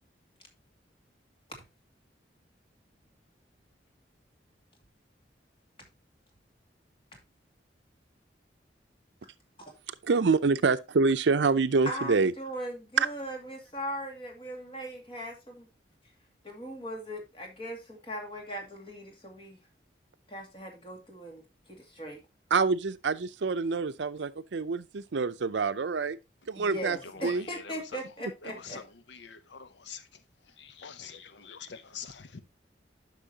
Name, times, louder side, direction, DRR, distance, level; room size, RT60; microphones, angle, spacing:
voice 1, 10.1-12.3 22.5-26.2 26.5-27.0 27.2-27.4, right 4 dB, 80° right, 0.5 m, -26 dB
voice 2, 11.9-15.7 16.4-19.6 20.3-22.2 26.5-28.8, equal, 30° left, 2.3 m, -39 dB
voice 3, 29.3-30.0 30.8-32.4, left 7 dB, 80° left, 0.7 m, -45 dB
10.0 x 6.2 x 2.8 m
head